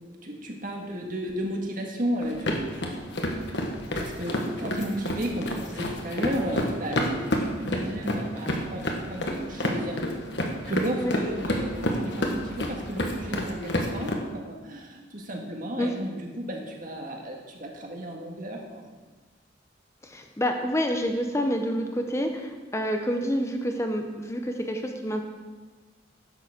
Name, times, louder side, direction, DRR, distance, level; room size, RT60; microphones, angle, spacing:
voice 1, 0.0-2.9 4.0-10.0 10.6-18.9, equal, 45° right, 1 dB, 1.8 m, -33 dB
sound 1, 2.2-14.1, equal, 65° left, 1.4 m, -30 dB
voice 2, 20.0-25.2, equal, 15° left, 4 dB, 0.7 m, -28 dB
11.0 x 6.9 x 6.6 m, 1.3 s
head